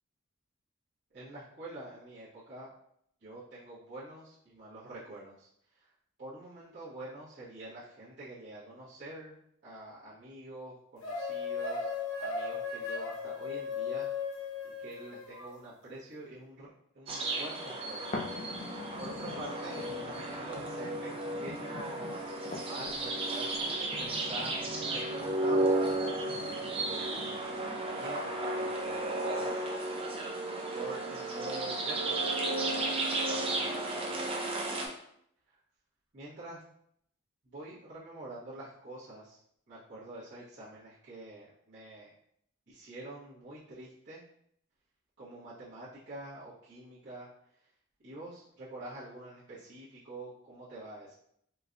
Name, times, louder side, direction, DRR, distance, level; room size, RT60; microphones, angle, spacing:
voice 1, 1.1-2.7 3.2-5.5 5.7-5.9 6.2-9.4 9.6-11.9 12.2-14.1 14.6-18.1 19.0-19.8 20.2-21.1 21.4-22.3 22.6-27.4 27.8-29.5 30.7-34.3 34.7-34.9 35.5-35.6 36.1-36.6 37.4-39.4 39.7-42.1 42.7-44.2 45.2-47.3 48.0-51.1, right 2 dB, 55° right, -12 dB, 1.1 m, -46 dB
sound 1, 11.0-15.5, left 5 dB, 85° left, 0.7 m, -36 dB
sound 2, 17.1-34.9, right 2 dB, 25° right, 0.5 m, -34 dB
sound 3, 18.1-28.1 28.7-28.8, left 2 dB, 35° left, 0.3 m, -45 dB
4.4 x 2.2 x 2.6 m, 0.70 s
head